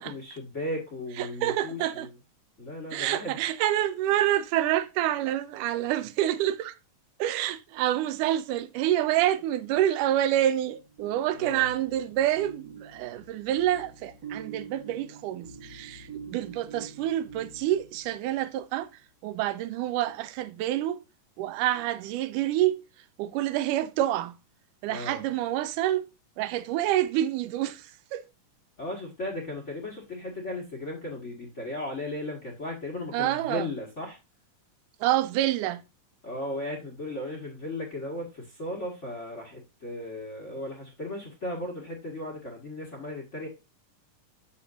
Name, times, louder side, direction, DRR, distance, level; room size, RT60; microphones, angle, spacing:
voice 1, 0.0-2.1 2.6-3.4 11.3-11.6 24.9-25.2 28.8-34.2 36.2-43.5, left 1 dB, 30° left, 1.4 m, -36 dB
voice 2, 1.2-2.1 2.9-6.7 7.2-18.9 19.2-21.0 21.4-22.8 23.2-24.3 24.8-26.1 26.4-28.2 33.1-33.7 35.0-35.8, right 13 dB, 85° right, 2.2 m, -27 dB
sound 1, 10.6-18.6, right 6 dB, 50° right, 1.1 m, -46 dB
8.5 x 7.0 x 2.5 m
omnidirectional pair, 3.6 m